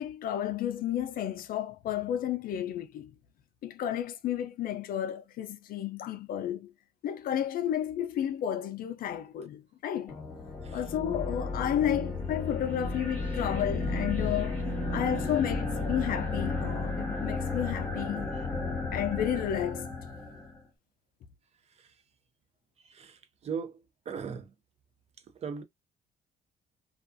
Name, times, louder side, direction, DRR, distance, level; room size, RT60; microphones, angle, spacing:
voice 1, 0.0-3.1 3.6-6.7 7.0-10.1 10.7-14.7 14.9-18.4 18.9-19.9, left 10 dB, 60° left, 0.4 m, -32 dB
sound 1, 10.1-20.6, left 3 dB, 10° left, 1.1 m, -33 dB
voice 2, 22.8-24.5 25.3-25.6, right 6 dB, 40° right, 0.5 m, -38 dB
2.4 x 2.3 x 2.4 m
cardioid pair, 110°, 17 cm